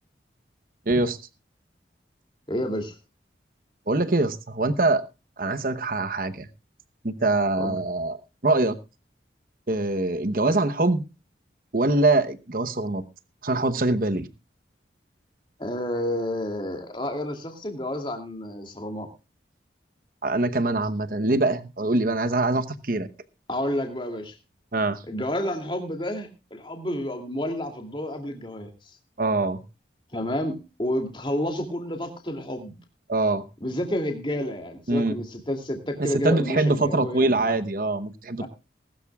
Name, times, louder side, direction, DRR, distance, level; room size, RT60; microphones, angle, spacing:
voice 1, 0.9-1.2 3.9-5.0 5.4-6.5 7.0-8.8 9.7-11.1 11.7-13.0 13.4-14.3 20.2-23.1 24.7-25.0 29.2-29.6 33.1-33.4 34.9-35.2 36.0-38.5, right 2 dB, 50° right, 11 dB, 1.0 m, -23 dB
voice 2, 2.5-2.9 7.6-7.8 15.6-19.1 23.5-24.4 25.1-28.7 30.1-32.7 33.6-37.6 38.4-38.5, left 1 dB, 25° left, 4 dB, 2.6 m, -30 dB
20.0 x 12.5 x 2.4 m, 0.28 s
head